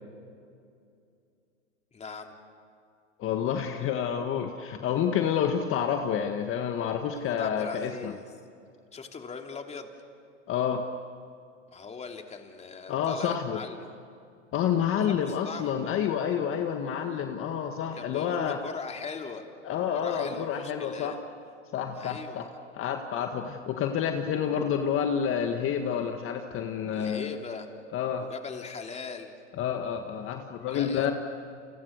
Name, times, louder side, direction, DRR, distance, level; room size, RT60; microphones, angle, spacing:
voice 1, 1.9-2.4 7.2-8.2 8.9-9.9 11.7-13.9 15.0-16.0 17.8-19.5 19.9-21.2 21.9-22.5 26.9-27.7 28.2-29.3 30.7-31.1, left 5 dB, 20° left, 4 dB, 3.1 m, -40 dB
voice 2, 3.2-8.1 10.5-10.9 12.9-13.6 14.5-18.6 19.6-21.1 21.7-22.4 22.7-27.3 27.9-28.2 29.6-31.1, left 8 dB, 35° left, 5 dB, 1.9 m, -29 dB
30.0 x 29.5 x 6.7 m, 2.4 s
hypercardioid pair, 105°, 36 cm